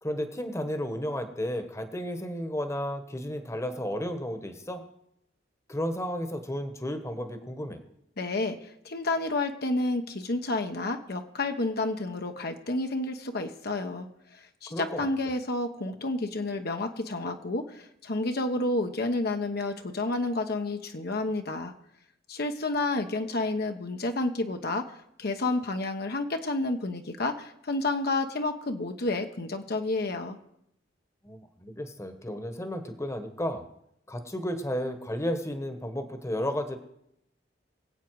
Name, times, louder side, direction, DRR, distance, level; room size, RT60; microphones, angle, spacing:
voice 1, 0.0-4.8 5.7-7.8 14.7-15.1 31.2-33.6 34.1-36.8, equal, 15° left, 8 dB, 1.2 m, -33 dB
voice 2, 8.2-8.6 8.8-14.1 14.3-21.7 22.3-30.4, left 2 dB, 55° left, 5 dB, 1.0 m, -30 dB
23.5 x 8.3 x 4.7 m, 0.78 s
head